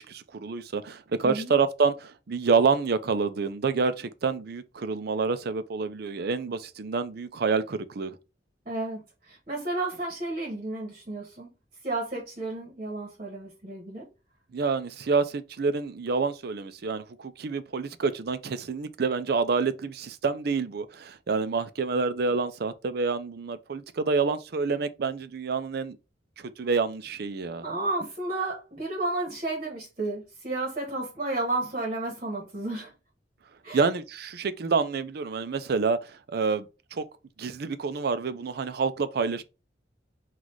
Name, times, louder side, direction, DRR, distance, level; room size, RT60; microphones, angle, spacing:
voice 1, 0.0-8.2 14.5-26.0 26.4-27.6 33.7-36.7 36.9-37.0 37.4-39.4, right 4 dB, 60° right, 0.5 m, -28 dB
voice 2, 8.6-9.0 9.3-11.5 11.8-14.1 27.6-32.9 33.6-33.9, right 2 dB, 40° right, 1.2 m, -32 dB
4.0 x 2.4 x 4.5 m
head